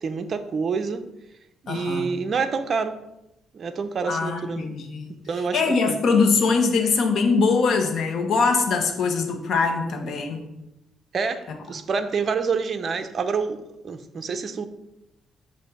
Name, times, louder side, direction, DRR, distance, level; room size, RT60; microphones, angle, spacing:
voice 1, 0.0-1.0 1.6-3.0 3.5-4.7 5.1-6.0 11.1-14.7, right 5 dB, 50° right, 9 dB, 0.5 m, -27 dB
voice 2, 1.7-2.1 4.1-5.2 5.5-10.4, left 4 dB, 65° left, 3 dB, 1.0 m, -22 dB
6.7 x 2.6 x 5.5 m, 0.88 s
cardioid pair, 90°, 0 cm